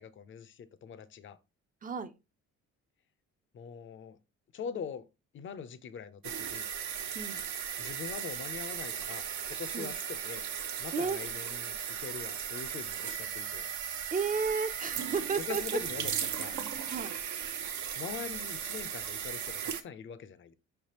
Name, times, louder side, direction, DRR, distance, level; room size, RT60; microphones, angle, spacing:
voice 1, 0.0-1.4 3.5-4.2 4.5-5.1 5.3-6.7 7.8-9.2 9.5-10.4 10.8-13.6 15.5-16.6 18.0-20.5, left 7 dB, 40° left, 0.5 m, -43 dB
voice 2, 1.8-2.1 7.1-7.5 9.7-9.9 10.9-11.2 14.1-15.8 16.8-17.1, right 5 dB, 30° right, 0.5 m, -33 dB
sound 1, 6.2-19.8, right 8 dB, 75° right, 0.7 m, -37 dB
4.9 x 3.3 x 2.9 m
cardioid pair, 90°, 30 cm